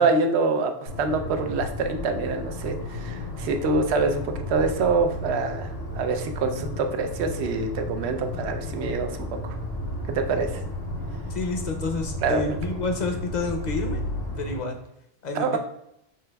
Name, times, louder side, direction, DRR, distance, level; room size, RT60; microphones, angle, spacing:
voice 1, 0.0-9.6 10.1-10.6 12.2-12.4 15.3-15.6, right 4 dB, 75° right, 6 dB, 0.8 m, -25 dB
sound 1, 0.9-14.6, left 1 dB, 90° left, 1.6 m, -33 dB
voice 2, 11.3-14.0 14.4-14.8 15.2-15.6, left 3 dB, 45° left, 4 dB, 0.7 m, -29 dB
6.6 x 3.3 x 2.2 m, 0.79 s
omnidirectional pair, 1.1 m